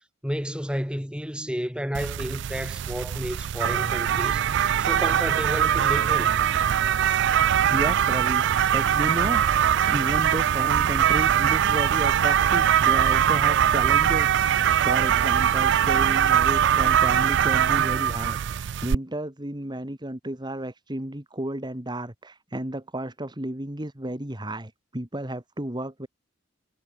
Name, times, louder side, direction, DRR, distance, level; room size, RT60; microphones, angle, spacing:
voice 1, 0.2-6.4, equal, 5° right, 5.7 m, -31 dB
sound 1, 1.9-18.9, right 9 dB, 65° right, 0.4 m, -22 dB
voice 2, 7.7-26.1, right 1 dB, 25° right, 2.2 m, -32 dB
head